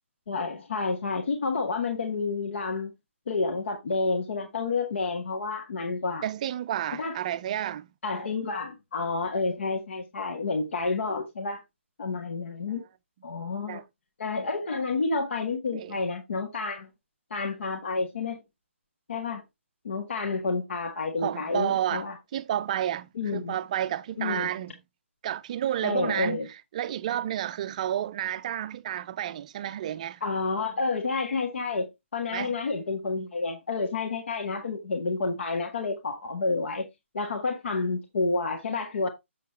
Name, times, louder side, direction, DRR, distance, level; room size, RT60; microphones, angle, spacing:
voice 1, 0.3-2.9 3.3-6.2 7.0-7.2 8.0-11.6 12.0-12.8 13.2-13.8 14.2-16.9 17.3-18.4 19.1-19.4 19.8-22.1 23.1-23.6 24.2-24.5 25.8-26.5 30.2-36.8 37.1-39.1, left 3 dB, 60° left, 1.7 m, -29 dB
voice 2, 6.2-7.9 13.7-13.8 15.7-16.0 21.2-22.1 22.3-24.7 25.2-30.2 32.3-32.5, right 11 dB, 30° right, 0.4 m, -31 dB
7.3 x 6.6 x 3.1 m
hypercardioid pair, 155°, 7 cm